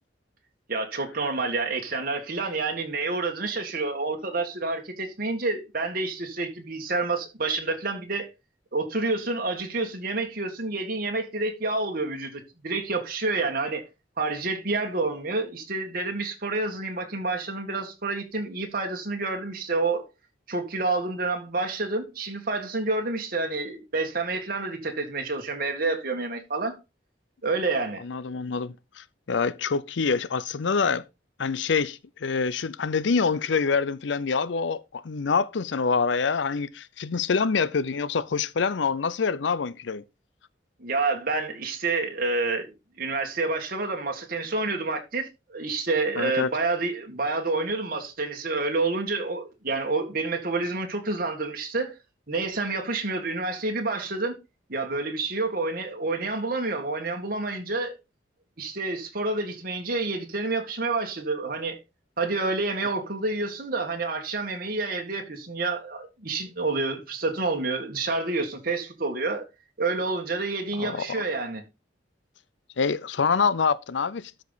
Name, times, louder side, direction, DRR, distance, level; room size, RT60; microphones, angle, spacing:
voice 1, 0.7-8.3 8.7-13.8 14.2-20.1 20.5-26.8 27.4-28.0 40.8-42.7 43.0-51.9 52.3-54.4 54.7-58.0 58.6-61.8 62.2-69.4 69.8-71.6, right 3 dB, 50° right, 1.9 m, -28 dB
voice 2, 28.0-31.0 31.4-40.0 46.2-46.5 70.8-71.2 72.8-74.4, left 5 dB, 75° left, 0.6 m, -26 dB
13.0 x 5.2 x 4.0 m
head